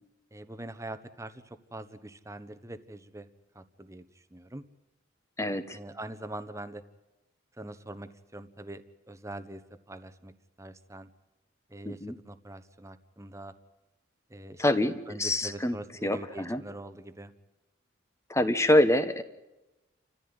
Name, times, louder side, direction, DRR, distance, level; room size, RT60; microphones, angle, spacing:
voice 1, 0.3-3.3 3.5-4.6 5.7-6.8 7.6-9.6 9.9-10.3 10.6-11.1 11.7-13.5 14.3-17.3, right 1 dB, 15° right, 11 dB, 1.2 m, -43 dB
voice 2, 5.4-5.8 11.8-12.2 14.6-15.8 16.0-16.6 18.3-19.2, left 1 dB, 15° left, 10 dB, 1.2 m, -25 dB
29.5 x 14.5 x 9.7 m, 1.0 s
head